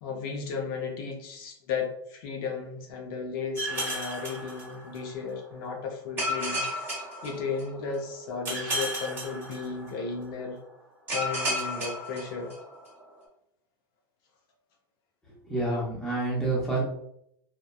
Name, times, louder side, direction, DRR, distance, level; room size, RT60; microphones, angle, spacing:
voice 1, 0.0-10.6 11.1-12.5, left 5 dB, 65° left, 1 dB, 0.6 m, -34 dB
sound 1, 3.6-5.2 6.2-7.9 8.4-10.1 11.1-12.8, equal, 15° right, 1.0 m, -33 dB
voice 2, 15.5-16.8, right 2 dB, 5° left, -5 dB, 0.7 m, -28 dB
2.9 x 2.1 x 2.2 m, 0.71 s
supercardioid pair, 160°, 13 cm